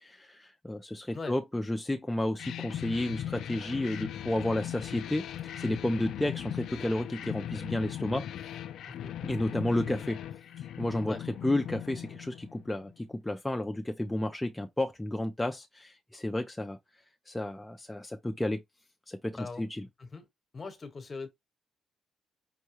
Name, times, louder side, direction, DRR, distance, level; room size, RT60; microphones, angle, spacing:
voice 1, 0.0-5.2 5.6-8.3 9.2-10.2 10.6-11.2 11.4-16.8 17.3-18.6 19.1-19.8, left 1 dB, 10° left, 0.5 m, -32 dB
sound 1, 2.4-12.9, left 11 dB, 75° left, 0.4 m, -39 dB
voice 2, 20.5-21.3, left 4 dB, 30° left, 1.1 m, -40 dB
5.5 x 2.2 x 3.0 m
cardioid pair, 115°, 0 cm